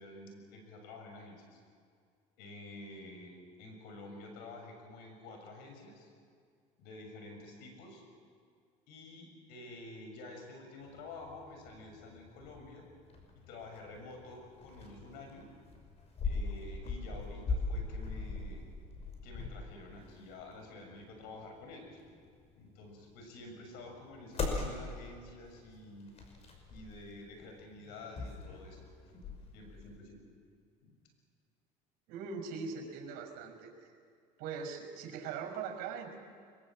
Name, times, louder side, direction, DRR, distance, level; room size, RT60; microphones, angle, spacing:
voice 1, 0.0-1.6 2.4-6.1 6.8-8.0 8.9-12.8 13.3-15.5 16.2-18.7 19.2-22.0 22.6-26.2 26.7-28.8 29.5-30.2 30.8-30.9, left 2 dB, 75° left, 3 dB, 6.9 m, -49 dB
sound 1, 10.9-30.0, left 3 dB, 40° left, 5.8 m, -42 dB
voice 2, 32.1-33.7 34.4-36.2, right 5 dB, 70° right, 4 dB, 5.8 m, -41 dB
23.5 x 23.0 x 7.7 m, 2.2 s
cardioid pair, 115°, 16 cm